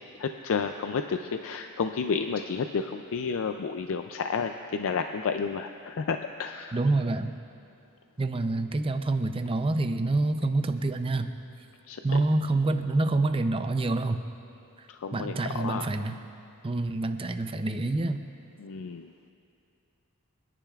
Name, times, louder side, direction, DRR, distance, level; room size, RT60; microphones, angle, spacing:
voice 1, 0.2-6.8 11.9-12.0 14.9-15.9 18.6-19.1, left 5 dB, 65° left, 7 dB, 0.4 m, -31 dB
voice 2, 6.7-7.3 8.2-11.3 12.0-14.2 15.1-16.2 16.6-18.2, right 2 dB, 25° right, 8 dB, 0.5 m, -27 dB
27.0 x 10.0 x 2.4 m, 2.7 s
head